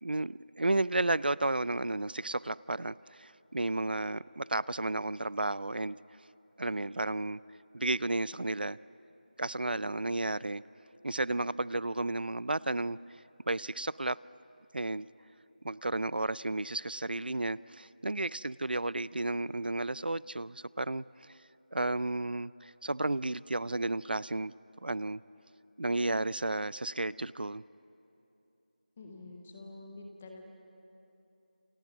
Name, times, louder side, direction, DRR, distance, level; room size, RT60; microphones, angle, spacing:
voice 1, 0.0-6.0 6.6-7.4 7.7-8.8 9.4-10.6 11.0-13.0 13.5-14.2 14.7-15.1 15.6-21.3 21.7-24.5 24.8-25.2 25.8-27.6, right 2 dB, 85° right, 20 dB, 0.5 m, -32 dB
voice 2, 29.0-30.5, left 2 dB, 5° left, 2 dB, 0.5 m, -47 dB
30.0 x 29.0 x 6.1 m, 2.9 s
figure-of-eight pair, 180°, 5 cm